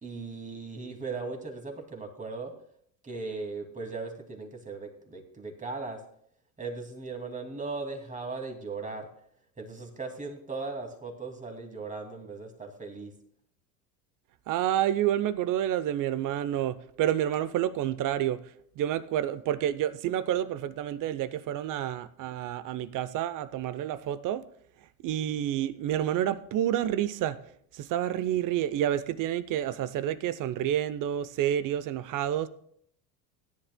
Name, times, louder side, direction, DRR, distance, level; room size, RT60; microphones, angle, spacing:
voice 1, 0.0-2.5 3.0-6.0 6.6-9.1 9.6-13.1, right 3 dB, 15° right, 2.4 m, -38 dB
voice 2, 14.5-18.4 18.8-24.4 25.0-27.4 27.7-32.5, right 11 dB, 40° right, 0.8 m, -29 dB
17.0 x 10.5 x 2.2 m
hypercardioid pair, 85°, 50 cm